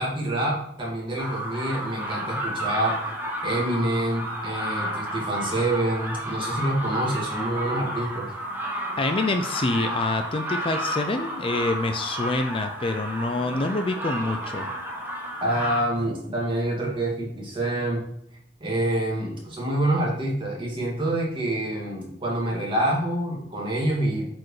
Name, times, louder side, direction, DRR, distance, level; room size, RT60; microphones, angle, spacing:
voice 1, 0.0-3.0 3.4-8.3 15.4-18.0 18.6-24.3, right 1 dB, 30° right, -3 dB, 2.1 m, -26 dB
sound 1, 1.2-15.8, right 1 dB, 10° right, 1.2 m, -32 dB
voice 2, 9.0-14.7, left 2 dB, 30° left, 7 dB, 0.4 m, -26 dB
8.4 x 4.6 x 3.2 m, 0.76 s
head